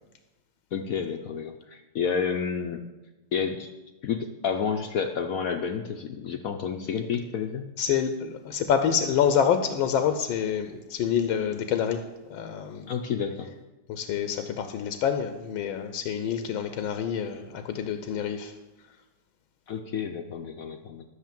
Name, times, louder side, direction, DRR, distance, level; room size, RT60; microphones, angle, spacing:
voice 1, 0.7-2.8 3.3-3.7 4.0-7.7 12.9-13.5 19.7-21.0, left 6 dB, 70° left, 6 dB, 0.8 m, -30 dB
voice 2, 7.8-12.9 13.9-18.5, left 8 dB, 85° left, 8 dB, 1.5 m, -27 dB
12.0 x 6.4 x 7.5 m, 1.1 s
omnidirectional pair, 2.2 m